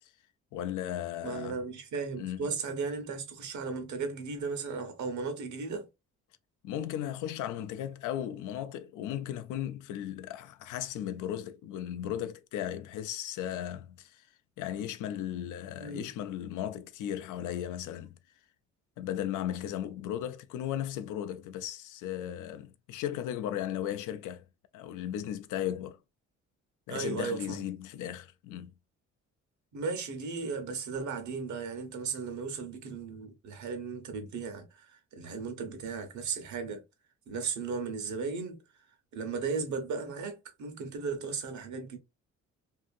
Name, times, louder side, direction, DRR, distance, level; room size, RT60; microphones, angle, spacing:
voice 1, 0.5-1.6 2.2-2.5 6.6-14.3 14.6-18.2 19.0-24.4 24.7-26.0 26.9-28.7, left 11 dB, 85° left, 0.4 m, -36 dB
voice 2, 1.2-5.9 15.8-16.1 26.9-27.6 29.7-36.8 37.3-38.6 39.1-42.0, right 5 dB, 70° right, 1.0 m, -36 dB
2.8 x 2.5 x 2.4 m
cardioid pair, 90°, 30 cm